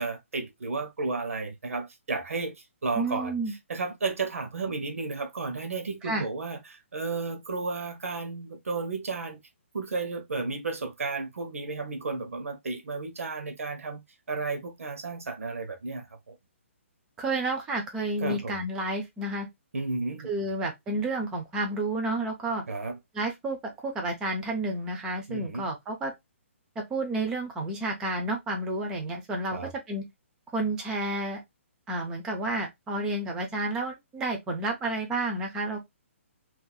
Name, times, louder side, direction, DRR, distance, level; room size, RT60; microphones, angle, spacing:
voice 1, 0.0-3.4 3.7-9.4 9.7-16.3 18.2-18.6 19.7-20.5 22.7-23.0 25.3-25.7 29.5-29.7, right 3 dB, 85° right, 1.0 m, -33 dB
voice 2, 2.9-3.5 6.0-6.2 17.2-19.5 20.2-22.6 23.1-26.1 26.8-29.6 29.9-30.0 30.5-31.4 31.9-35.8, right 2 dB, 10° right, 0.5 m, -30 dB
2.7 x 2.5 x 3.8 m
hypercardioid pair, 175°, 7 cm